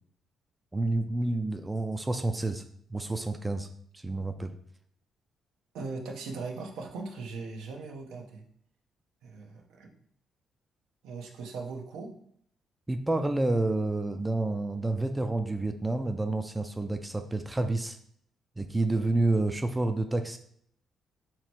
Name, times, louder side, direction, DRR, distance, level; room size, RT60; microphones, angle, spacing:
voice 1, 0.7-2.6 2.9-3.7 3.9-4.5 12.9-18.0 18.6-20.4, right 2 dB, 15° right, 7 dB, 0.4 m, -29 dB
voice 2, 5.7-8.5 9.2-10.0 11.0-12.2, right 4 dB, 85° right, 1 dB, 0.7 m, -39 dB
3.1 x 2.9 x 4.4 m, 0.66 s
cardioid pair, 90°, 0 cm